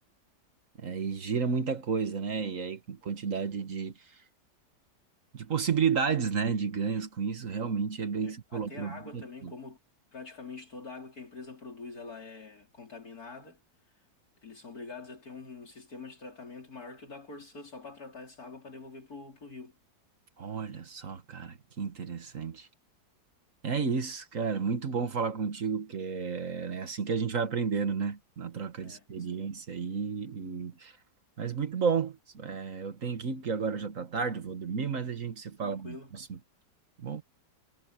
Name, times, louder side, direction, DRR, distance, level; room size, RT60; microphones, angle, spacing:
voice 1, 0.8-4.1 5.3-9.5 20.4-22.7 23.6-30.9 31.4-36.4 37.0-37.2, right 5 dB, 50° right, 1.8 m, -32 dB
voice 2, 8.2-9.8 10.1-13.6 14.4-19.8 28.8-29.5 35.6-36.1, left 4 dB, 55° left, 4.1 m, -45 dB
omnidirectional pair, 1.9 m